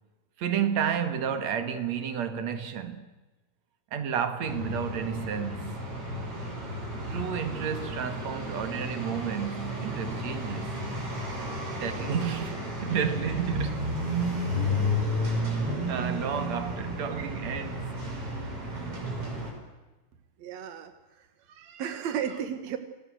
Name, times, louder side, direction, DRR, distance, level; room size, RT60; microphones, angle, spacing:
voice 1, 0.4-3.0 3.9-5.8 7.1-10.8 11.8-13.9 15.6-18.0, right 8 dB, 50° right, 2.2 m, -31 dB
sound 1, 4.5-19.5, equal, 30° right, 5.7 m, -32 dB
voice 2, 20.4-20.9 21.5-22.8, right 8 dB, 70° right, 1.6 m, -33 dB
27.5 x 19.5 x 7.9 m
omnidirectional pair, 5.3 m